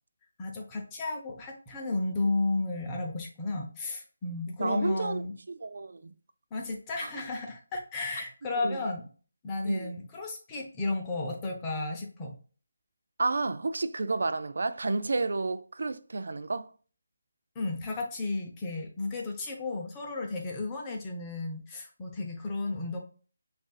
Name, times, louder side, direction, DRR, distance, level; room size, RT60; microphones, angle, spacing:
voice 1, 0.4-5.3 6.5-9.0 9.4-12.4 17.5-23.0, left 3 dB, 15° left, 0.8 m, -33 dB
voice 2, 4.6-5.2 5.6-6.1 7.0-7.1 8.6-8.8 9.6-9.9 13.2-16.7, right 3 dB, 65° right, 0.4 m, -30 dB
5.9 x 2.6 x 2.4 m
figure-of-eight pair, 165°, 0 cm